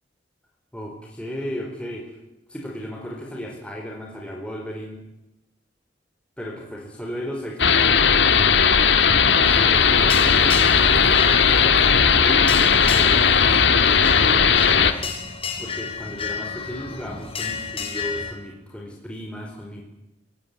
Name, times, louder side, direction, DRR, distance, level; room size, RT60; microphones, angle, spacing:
voice 1, 0.7-2.1 2.5-5.0 6.4-8.6 9.4-15.1 15.6-19.8, equal, 5° left, -1 dB, 4.5 m, -35 dB
sound 1, 7.6-14.9, left 6 dB, 80° left, 1.8 m, -17 dB
sound 2, 9.4-18.3, left 5 dB, 30° left, 4.9 m, -32 dB
28.0 x 16.5 x 9.7 m, 0.93 s
head